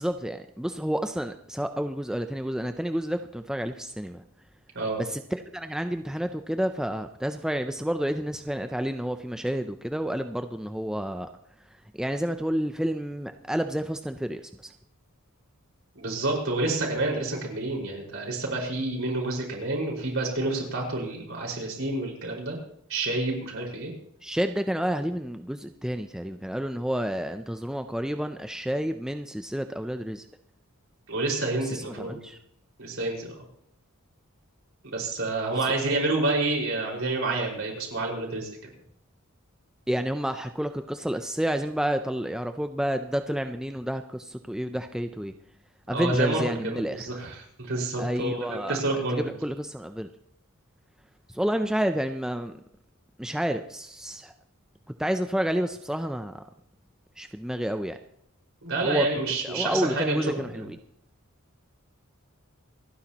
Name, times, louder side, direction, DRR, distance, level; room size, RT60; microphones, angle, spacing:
voice 1, 0.0-4.2 5.0-11.3 12.0-14.7 24.2-30.3 31.6-32.4 39.9-45.3 45.9-47.1 48.0-48.8 49.1-50.1 51.3-52.6 53.2-54.3 55.0-56.4 57.2-58.0 58.8-59.1 59.4-60.8, equal, 5° right, 7 dB, 0.4 m, -30 dB
voice 2, 15.9-22.6 22.9-23.9 31.1-32.1 32.8-33.3 34.8-38.7 45.9-49.2 58.6-60.6, right 2 dB, 65° right, -1 dB, 5.0 m, -29 dB
28.0 x 10.0 x 2.9 m, 0.70 s
head